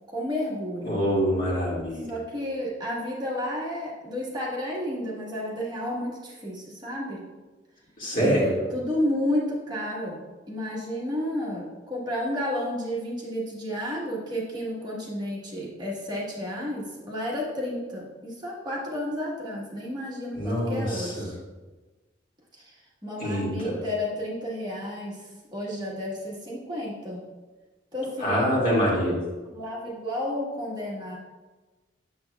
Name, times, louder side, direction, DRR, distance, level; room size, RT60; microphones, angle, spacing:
voice 1, 0.1-1.0 2.1-7.2 8.1-21.3 22.6-22.8 23.0-25.2 25.5-27.2 27.9-28.5 29.5-31.2, left 1 dB, 25° right, -5 dB, 1.4 m, -31 dB
voice 2, 0.8-2.1 8.0-8.5 20.4-21.3 23.2-23.8 28.2-29.2, equal, 50° left, -6 dB, 2.2 m, -25 dB
7.9 x 7.1 x 2.3 m, 1.2 s
head